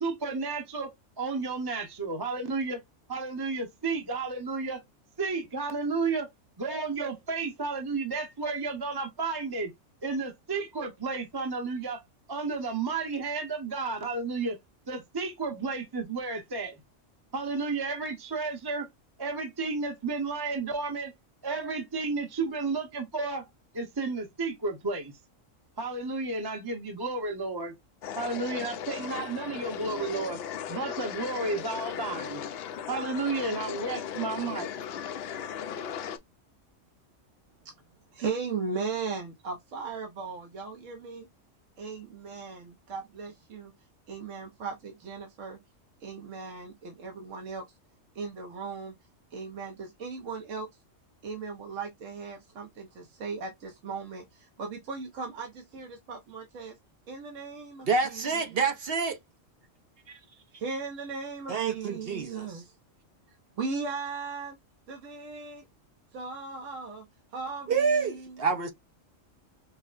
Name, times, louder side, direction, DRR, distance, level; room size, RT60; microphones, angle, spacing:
voice 1, 0.0-0.9 1.2-2.8 3.1-4.8 5.2-6.3 6.6-9.7 10.0-12.0 12.3-14.6 14.9-16.7 17.3-18.9 19.2-21.1 21.4-23.5 23.7-25.1 25.8-27.7 28.2-30.4 30.7-32.4 32.9-34.7, right 3 dB, 20° right, 0.7 m, -32 dB
sound 1, 28.0-36.2, left 8 dB, 65° left, 0.7 m, -37 dB
voice 2, 38.1-41.3 41.8-43.7 44.1-45.6 46.0-47.6 48.2-48.9 49.3-50.7 51.2-56.7 57.1-58.6 60.5-62.7 63.6-64.5 64.9-65.6 66.1-67.0 67.3-68.3, right 4 dB, 75° right, 1.2 m, -37 dB
voice 3, 57.8-59.2 60.1-60.2 61.5-62.6 67.7-68.7, right 5 dB, 55° right, 0.8 m, -28 dB
5.4 x 2.1 x 2.4 m
omnidirectional pair, 1.3 m